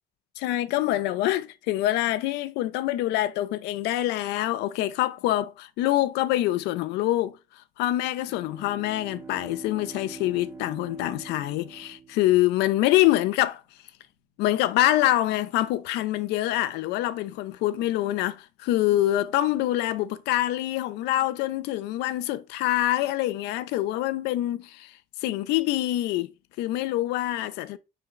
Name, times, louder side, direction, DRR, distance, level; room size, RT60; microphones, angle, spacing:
voice 1, 0.4-13.6 14.4-26.3 26.6-27.8, left 15 dB, 90° left, 0.4 m, -25 dB
Bowed string instrument, 8.1-12.8, right 4 dB, 15° right, 0.5 m, -45 dB
4.2 x 3.3 x 3.8 m
cardioid pair, 110°, 17 cm